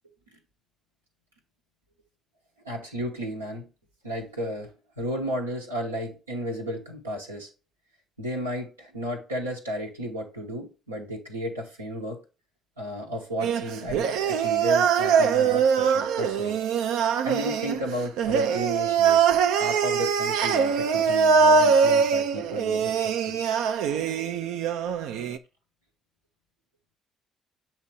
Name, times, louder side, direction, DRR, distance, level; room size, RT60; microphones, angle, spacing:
voice 1, 2.6-3.7 4.0-7.5 8.2-12.2 12.8-16.6 17.2-19.3 19.6-23.4, equal, 85° right, 1.1 m, -33 dB
sound 1, 13.4-25.4, right 6 dB, 70° right, 0.4 m, -23 dB
7.4 x 2.9 x 4.6 m
figure-of-eight pair, 45°, 0 cm